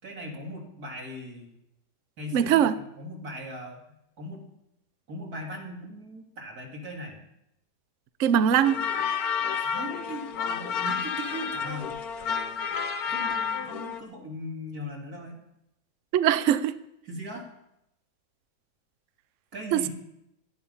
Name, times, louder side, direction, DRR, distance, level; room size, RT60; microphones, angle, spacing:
voice 1, 0.0-1.6 2.2-3.8 4.2-4.4 5.1-7.2 9.6-12.0 13.1-15.4 17.0-17.5 19.5-19.9, equal, 50° right, 0 dB, 3.5 m, -39 dB
voice 2, 2.3-2.7 8.2-8.8 16.1-16.8 19.7-19.9, right 9 dB, 70° right, 13 dB, 0.7 m, -21 dB
sound 1, 8.6-14.0, left 6 dB, 60° left, 1.2 m, -30 dB
17.5 x 11.5 x 5.6 m, 0.83 s
omnidirectional pair, 2.1 m